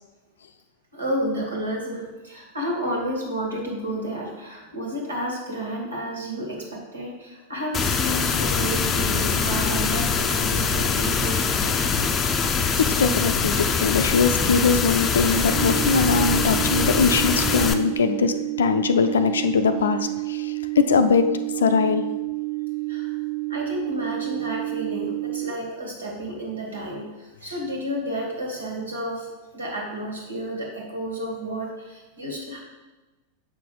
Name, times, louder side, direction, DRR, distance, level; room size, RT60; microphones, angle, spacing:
voice 1, 0.9-11.8 22.9-23.1 23.5-29.3 29.5-32.6, equal, 75° right, 0 dB, 2.0 m, -31 dB
sound 1, 7.7-17.7, left 5 dB, 25° left, 0.6 m, -23 dB
voice 2, 12.6-21.3 21.6-22.1, left 5 dB, 65° left, 9 dB, 0.5 m, -21 dB
sound 2, 15.5-25.5, right 25 dB, 50° right, 0.5 m, -29 dB
7.4 x 5.8 x 3.9 m, 1.2 s
figure-of-eight pair, 90°, 0 cm